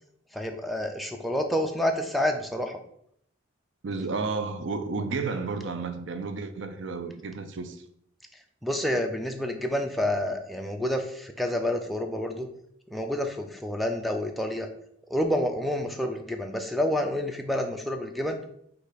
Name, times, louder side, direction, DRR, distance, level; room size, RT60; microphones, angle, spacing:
voice 1, 0.3-2.8 8.3-12.5 12.9-14.7 15.1-18.4, left 1 dB, ahead, 0.3 m, -29 dB
voice 2, 3.8-7.8, right 4 dB, 75° right, 0.5 m, -32 dB
5.1 x 2.4 x 4.1 m
head